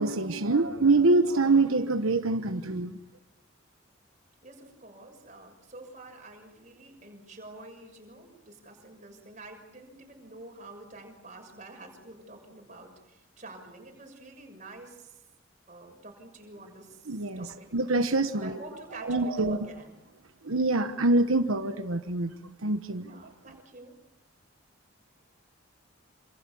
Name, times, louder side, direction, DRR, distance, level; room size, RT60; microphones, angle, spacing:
voice 1, 0.0-2.9 17.1-18.6 19.0-19.6 20.4-23.2, right 2 dB, 90° right, 1.2 m, -25 dB
voice 2, 4.4-15.1 15.7-17.7 18.3-20.0 23.1-23.9, right 2 dB, 35° right, 6.5 m, -48 dB
28.0 x 27.0 x 7.1 m
head